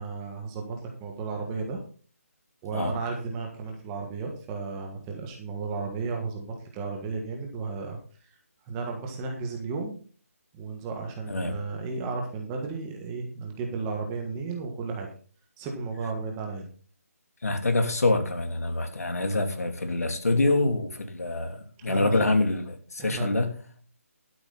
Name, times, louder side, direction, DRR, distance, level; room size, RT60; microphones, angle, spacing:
voice 1, 0.0-1.8 2.6-8.0 8.6-10.0 10.5-15.1 15.6-16.7 21.8-22.2 23.0-23.3, right 4 dB, 10° right, 1.5 m, -34 dB
voice 2, 17.4-23.5, left 2 dB, 80° left, 2.8 m, -26 dB
12.5 x 10.0 x 4.0 m
hypercardioid pair, 175°, 8 cm